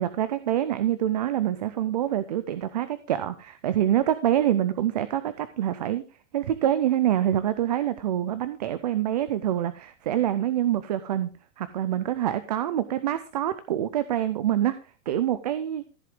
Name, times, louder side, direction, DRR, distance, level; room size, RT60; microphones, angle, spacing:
voice 1, 0.0-6.0 6.3-11.3 11.6-14.8 15.1-15.9, right 11 dB, 35° right, 13 dB, 0.4 m, -26 dB
14.0 x 7.7 x 3.5 m, 0.35 s
supercardioid pair, 180°, 39 cm